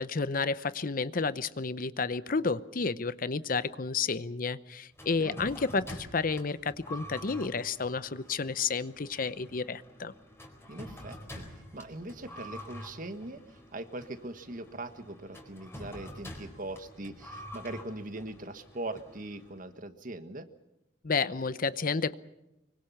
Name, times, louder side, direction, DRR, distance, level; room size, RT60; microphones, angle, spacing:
voice 1, 0.0-10.1 21.0-22.1, left 4 dB, 50° left, 15 dB, 0.8 m, -31 dB
sound 1, 5.0-19.7, left 1 dB, 15° left, 4.2 m, -47 dB
voice 2, 5.1-5.5 10.7-11.4 11.7-20.5, right 2 dB, 45° right, 9 dB, 1.5 m, -41 dB
24.5 x 24.0 x 5.8 m, 0.95 s
head